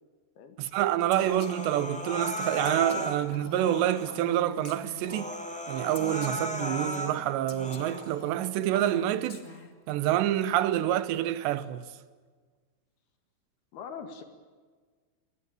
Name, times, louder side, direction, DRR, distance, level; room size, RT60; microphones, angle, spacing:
voice 1, 0.6-5.4 5.7-9.4 9.9-11.9, right 12 dB, 80° right, 3.1 m, -27 dB
Female speech woman speaking, 1.1-5.3 5.9-9.9, left 3 dB, 45° left, 0.9 m, -44 dB
Human voice, 1.1-3.2 3.6-4.2 4.6-4.7 5.0-7.1 7.5-8.1, equal, ahead, 2.1 m, -35 dB
voice 2, 13.7-14.2, left 6 dB, 65° left, 3.8 m, -41 dB
23.5 x 19.5 x 8.9 m
omnidirectional pair, 5.0 m